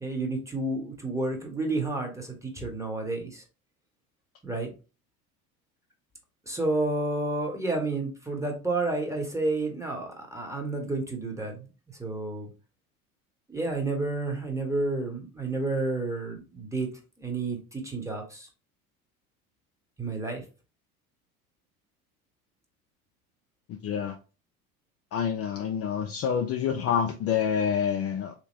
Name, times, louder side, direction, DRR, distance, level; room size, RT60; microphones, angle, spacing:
voice 1, 0.0-3.4 4.4-4.7 6.5-11.7 12.0-12.5 13.5-16.9 17.2-18.5 20.0-20.4, right 2 dB, 5° right, 1.2 m, -30 dB
voice 2, 23.7-24.1 25.1-28.3, left 7 dB, 35° left, 0.5 m, -27 dB
3.4 x 2.9 x 3.1 m
hypercardioid pair, 75°, 44 cm